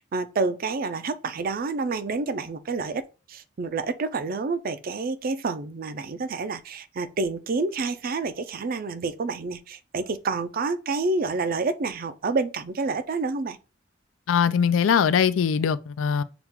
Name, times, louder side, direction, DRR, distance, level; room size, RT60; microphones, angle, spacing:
voice 1, 0.1-13.6, right 3 dB, 50° right, 0.4 m, -28 dB
voice 2, 14.3-16.2, left 7 dB, 85° left, 0.4 m, -21 dB
5.8 x 2.3 x 3.6 m
head